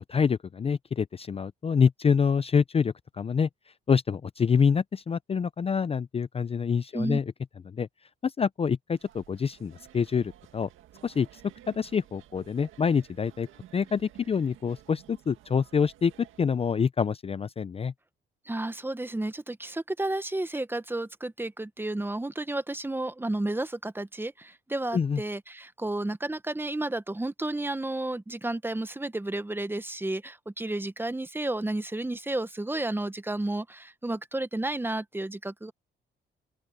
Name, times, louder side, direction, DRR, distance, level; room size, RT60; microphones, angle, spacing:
voice 1, 0.1-3.5 3.9-7.2 7.7-7.9 8.2-10.7 11.0-11.3 11.7-13.5 13.7-17.9 24.9-25.2, left 6 dB, 30° left, 0.5 m, -26 dB
sound 1, 8.9-16.4, right 12 dB, 85° right, 1.8 m, -54 dB
voice 2, 18.4-35.7, right 2 dB, 10° right, 1.0 m, -32 dB
open air
cardioid pair, 90°, 20 cm